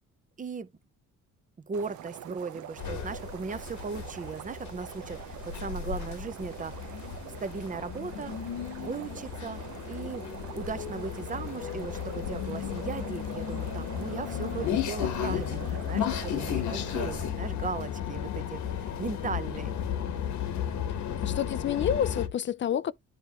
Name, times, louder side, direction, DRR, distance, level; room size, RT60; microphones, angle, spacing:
voice 1, 0.4-0.7 1.7-6.8 7.4-8.4 8.8-9.6 9.9-10.3 10.5-19.7, right 5 dB, 25° right, 0.7 m, -37 dB
sound 1, 1.7-17.3, right 11 dB, 75° right, 0.7 m, -45 dB
sound 2, 2.8-22.3, left 9 dB, 70° left, 1.2 m, -34 dB
voice 2, 21.0-22.9, left 9 dB, 40° left, 0.4 m, -29 dB
10.0 x 3.5 x 2.9 m
cardioid pair, 90°, 30 cm